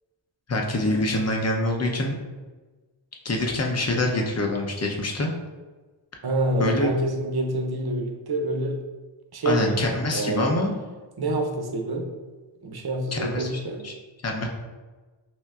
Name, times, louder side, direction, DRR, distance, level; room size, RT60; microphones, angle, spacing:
voice 1, 0.5-2.1 3.2-5.3 6.6-6.9 9.4-10.7 13.1-13.5 13.8-13.9 14.2-14.5, left 1 dB, 30° left, 1 dB, 0.7 m, -25 dB
voice 2, 6.2-8.8 9.3-10.6 11.2-12.1 12.6-13.8, right 1 dB, 50° right, 2 dB, 0.7 m, -27 dB
5.6 x 2.1 x 2.4 m, 1.3 s
cardioid pair, 45°, 49 cm